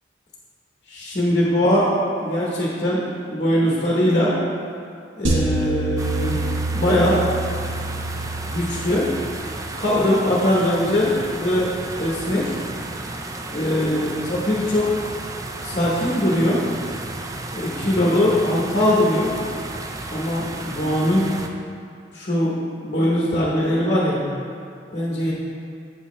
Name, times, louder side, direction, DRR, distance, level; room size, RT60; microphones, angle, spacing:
voice 1, 0.9-1.9 2.2-4.4 5.2-6.4 6.7-7.2 8.5-9.1 9.8-12.5 13.5-15.0 15.6-16.6 17.5-19.3 20.1-21.3 22.1-24.2 24.9-25.3, left 1 dB, 40° left, -5 dB, 1.0 m, -21 dB
sound 1, 5.2-9.6, right 2 dB, 85° right, 0.9 m, -26 dB
sound 2, 6.0-21.5, right 2 dB, 15° right, 0.3 m, -33 dB
8.1 x 6.2 x 3.1 m, 2.4 s
head